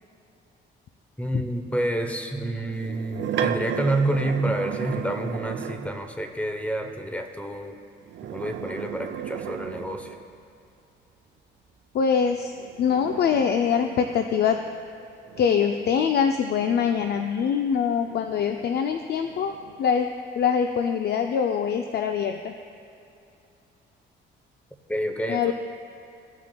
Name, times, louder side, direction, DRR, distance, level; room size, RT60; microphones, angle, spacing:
voice 1, 1.2-7.8 8.3-10.2 24.9-25.5, right 1 dB, 5° left, 5 dB, 0.8 m, -28 dB
sound 1, 2.7-6.1 8.0-10.4 12.3-17.5 18.1-19.8, right 9 dB, 65° right, 0.4 m, -35 dB
voice 2, 11.9-12.5 12.8-14.6 15.4-19.5 19.8-20.1 20.4-22.5 25.3-25.5, left 7 dB, 55° left, 6 dB, 0.4 m, -23 dB
15.0 x 5.9 x 2.2 m, 2.7 s
cardioid pair, 90°, 20 cm